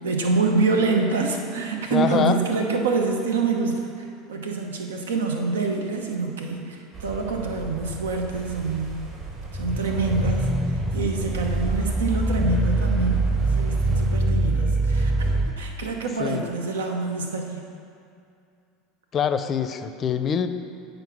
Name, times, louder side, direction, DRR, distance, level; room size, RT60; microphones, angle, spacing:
voice 1, 0.0-9.1 9.5-10.5 10.9-17.6, right 4 dB, 85° right, 2 dB, 0.9 m, -26 dB
voice 2, 1.9-2.4 16.2-16.5 19.1-20.5, left 8 dB, 40° left, 11 dB, 0.5 m, -24 dB
sound 1, 6.9-14.2, right 4 dB, 45° right, 2.2 m, -36 dB
sound 2, 9.4-15.6, right 2 dB, 15° right, 0.6 m, -24 dB
7.8 x 5.1 x 6.0 m, 2.4 s
hypercardioid pair, 85°, 0 cm